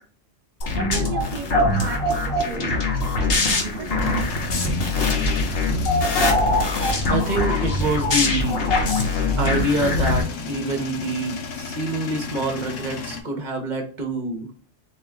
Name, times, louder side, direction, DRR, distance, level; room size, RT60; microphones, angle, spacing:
sound 1, 0.6-10.2, left 2 dB, 55° left, 1.1 m, -22 dB
voice 1, 0.8-2.8 3.2-3.9, right 5 dB, 60° right, 4 dB, 0.5 m, -35 dB
Male speech man speaking / Vehicle / Engine starting, 1.6-13.2, left 4 dB, 80° left, 1.1 m, -36 dB
voice 2, 7.1-8.7 9.4-14.5, right 2 dB, 40° right, 3 dB, 1.0 m, -26 dB
3.7 x 2.8 x 3.5 m, 0.41 s
omnidirectional pair, 1.3 m